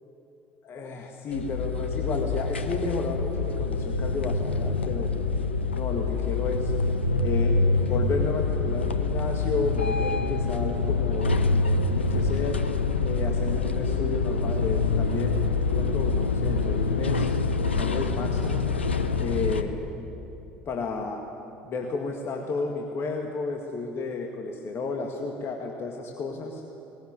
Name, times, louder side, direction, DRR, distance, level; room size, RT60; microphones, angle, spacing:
voice 1, 0.7-5.1 5.7-6.7 7.2-12.6 13.0-17.3 17.8-18.7 19.2-19.8 20.7-21.2 21.6-26.6, left 3 dB, 45° left, 2 dB, 2.0 m, -32 dB
sound 1, 1.3-19.6, left 3 dB, 90° left, 0.9 m, -26 dB
20.0 x 17.0 x 9.6 m, 2.9 s
figure-of-eight pair, 65°, 6 cm